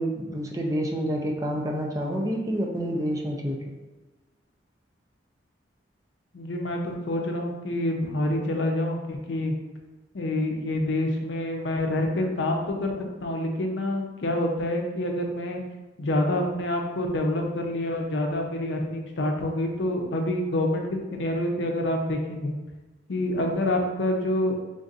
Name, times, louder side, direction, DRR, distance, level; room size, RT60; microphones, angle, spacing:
voice 1, 0.0-3.6, equal, 20° right, 1 dB, 0.5 m, -28 dB
voice 2, 6.3-9.5 10.1-12.9 13.2-15.6 16.0-22.5 23.1-24.6, left 1 dB, 70° left, 2 dB, 0.6 m, -27 dB
3.5 x 2.6 x 3.9 m, 1.2 s
head